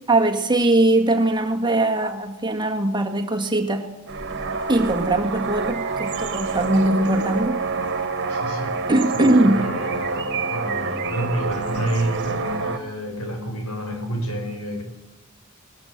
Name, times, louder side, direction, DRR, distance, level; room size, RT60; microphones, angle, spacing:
voice 1, 0.1-3.9 4.7-7.6 8.9-9.7, right 2 dB, 20° right, 4 dB, 1.7 m, -20 dB
sound 1, 4.1-12.8, right 4 dB, 55° right, 1.7 m, -27 dB
voice 2, 8.3-8.8 9.1-14.8, right 1 dB, 85° left, 3 dB, 5.8 m, -29 dB
19.5 x 19.5 x 8.0 m, 0.99 s
head